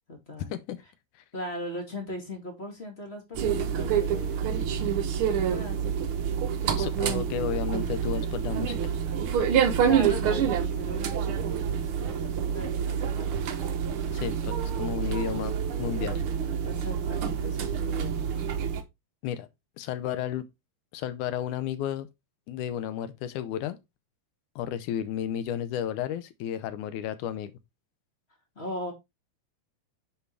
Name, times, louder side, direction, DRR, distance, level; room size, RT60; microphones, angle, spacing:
voice 1, 0.1-0.5 1.3-6.1 9.8-13.5 16.6-18.5 28.6-28.9, left 1 dB, 20° left, 2.1 m, -39 dB
sound 1, 3.3-18.8, right 8 dB, 85° right, 1.1 m, -27 dB
voice 2, 6.8-8.8 14.1-16.2 19.2-19.5 19.8-20.5 20.9-22.1 22.5-23.8 24.6-27.5, left 10 dB, 75° left, 2.1 m, -32 dB
9.3 x 4.7 x 3.3 m
omnidirectional pair, 3.8 m